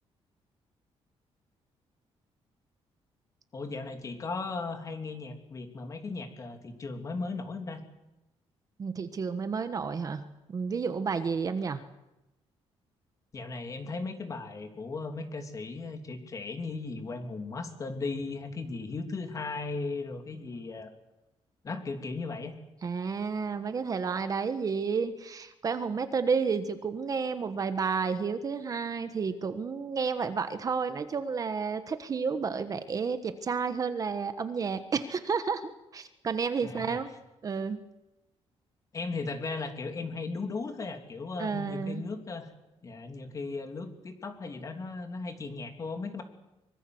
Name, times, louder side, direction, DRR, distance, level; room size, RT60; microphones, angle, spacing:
voice 1, 3.5-7.9 13.3-20.9 21.6-22.6 36.6-37.0 38.9-42.5 42.8-46.2, left 3 dB, 30° left, 6 dB, 3.0 m, -37 dB
voice 2, 8.8-11.8 22.8-37.1 37.4-37.8 41.4-42.0, right 5 dB, 35° right, 10 dB, 1.3 m, -31 dB
24.5 x 24.0 x 7.9 m, 0.96 s
cardioid pair, 165°, 11 cm